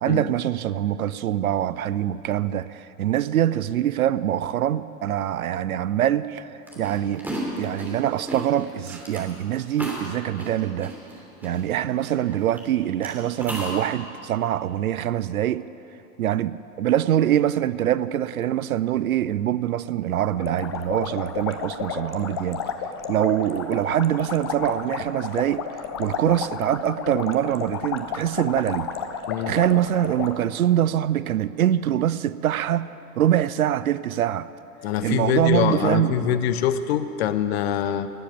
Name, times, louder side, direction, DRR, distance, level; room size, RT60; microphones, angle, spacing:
voice 1, 0.0-7.3 7.6-10.9 11.4-15.7 16.2-22.6 23.1-29.0 29.5-32.9 33.2-34.5 35.0-36.4, right 11 dB, 65° right, 16 dB, 0.5 m, -24 dB
sound 1, 6.7-12.6 13.0-13.8, right 1 dB, 5° right, 2.8 m, -34 dB
sound 2, 20.4-30.3, left 7 dB, 20° left, 0.3 m, -32 dB
voice 2, 34.8-38.1, left 10 dB, 40° left, 12 dB, 0.8 m, -24 dB
17.5 x 7.3 x 9.4 m, 3.0 s
figure-of-eight pair, 90°, 47 cm